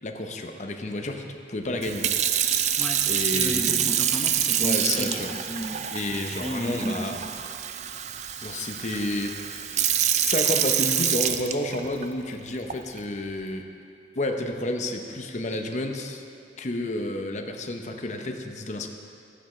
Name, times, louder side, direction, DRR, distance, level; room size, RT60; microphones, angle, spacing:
voice 1, 0.0-2.8 3.1-4.0 4.6-5.3 5.9-7.2 8.4-9.9 10.2-13.7 14.1-16.2 16.6-18.9, left 1 dB, 40° left, 4 dB, 0.8 m, -31 dB
Sink (filling or washing) / Fill (with liquid), 1.8-12.0 12.7-13.0, right 10 dB, 40° right, 0.4 m, -26 dB
voice 2, 2.8-5.9 6.4-7.2, right 1 dB, 5° left, 0 dB, 0.8 m, -33 dB
14.5 x 9.8 x 3.2 m, 2.5 s
head